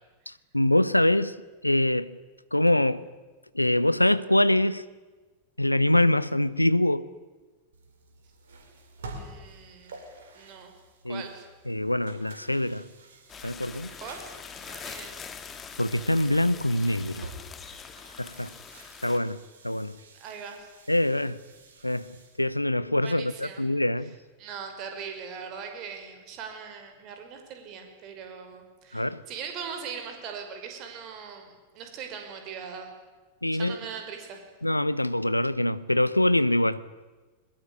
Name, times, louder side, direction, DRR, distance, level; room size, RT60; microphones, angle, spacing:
voice 1, 0.3-1.3 1.6-2.1 2.5-3.0 3.5-4.8 5.6-7.1 11.0-11.2 11.7-12.8 13.4-13.9 15.8-17.3 18.2-18.5 19.0-19.9 20.9-21.4 21.8-24.1 28.9-29.2 33.4-33.8 34.6-36.8, left 1 dB, 85° left, 0.8 m, -24 dB
sound 1, 7.7-22.4, right 2 dB, 65° right, 4.9 m, -49 dB
voice 2, 9.2-9.9 10.3-10.7 11.1-11.5 14.0-14.3 14.6-15.2 20.2-20.7 23.0-23.6 24.4-31.5 31.7-32.9 33.5-34.4, right 6 dB, 40° right, 5.7 m, -40 dB
sound 2, 13.3-19.2, left 6 dB, 20° left, 2.1 m, -43 dB
22.5 x 21.5 x 10.0 m
figure-of-eight pair, 90°, 0 cm